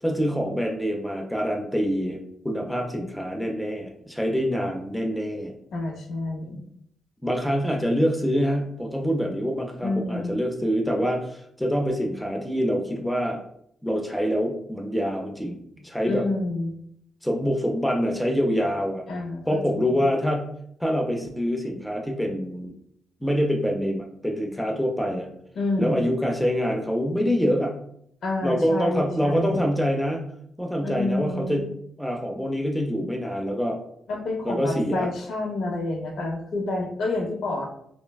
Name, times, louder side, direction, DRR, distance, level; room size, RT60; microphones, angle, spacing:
voice 1, 0.0-2.2 2.4-5.5 7.2-13.4 13.8-15.6 15.8-16.2 17.2-19.0 19.5-20.5 20.8-22.7 23.2-25.3 25.8-27.8 28.4-30.2 30.6-31.7 32.0-33.8 34.5-35.1, equal, ahead, 2 dB, 0.4 m, -25 dB
voice 2, 5.7-6.7 9.8-10.4 16.1-16.7 19.1-19.9 25.6-26.1 28.2-29.6 30.8-31.6 34.1-37.7, left 2 dB, 75° left, 2 dB, 0.5 m, -28 dB
3.2 x 2.1 x 2.2 m, 0.69 s
cardioid pair, 125°, 0 cm